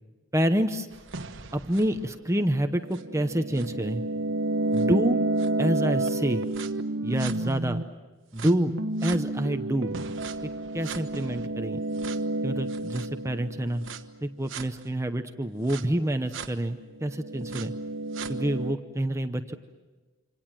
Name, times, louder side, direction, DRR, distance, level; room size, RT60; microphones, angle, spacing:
voice 1, 0.3-0.9 1.5-4.0 4.7-5.2 5.6-6.4 7.0-7.8 8.3-8.7 9.0-10.0 10.4-11.8 12.4-13.8 14.2-17.7 18.3-19.5, right 1 dB, 15° right, 8 dB, 0.8 m, -27 dB
sound 1, 0.9-7.8 8.4-14.0 14.5-14.6 15.7-15.8 16.3-16.5 17.0-18.7, right 2 dB, 60° right, 1.2 m, -30 dB
27.0 x 26.5 x 7.5 m, 1.2 s
head